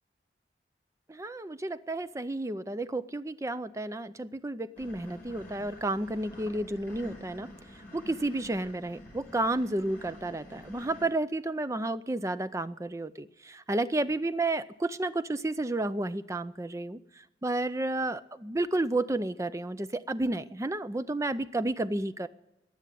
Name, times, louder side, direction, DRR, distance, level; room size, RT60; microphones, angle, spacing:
voice 1, 1.1-7.5 7.9-17.0 17.4-22.3, right 2 dB, 15° right, 13 dB, 0.5 m, -31 dB
sound 1, 4.8-11.1, left 1 dB, 10° left, 5.9 m, -48 dB
20.5 x 7.2 x 9.2 m, 0.93 s
head